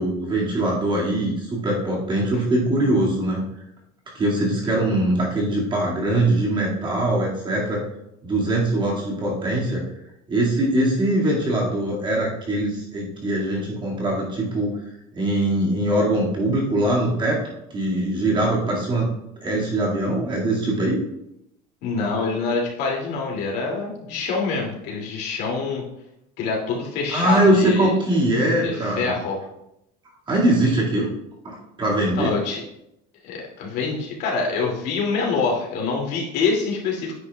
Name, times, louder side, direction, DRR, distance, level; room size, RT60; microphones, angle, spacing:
voice 1, 0.0-3.4 4.1-7.8 8.2-9.9 10.3-14.8 15.1-17.4 17.7-19.1 19.4-21.0 27.1-29.2 30.3-31.1 31.4-32.4, right 1 dB, 25° right, -4 dB, 2.2 m, -22 dB
voice 2, 21.8-25.8 26.4-27.9 28.6-29.4 32.1-32.6 33.2-37.1, left 4 dB, 60° left, -2 dB, 2.6 m, -25 dB
9.5 x 9.0 x 2.4 m, 0.82 s
cardioid pair, 160°, 19 cm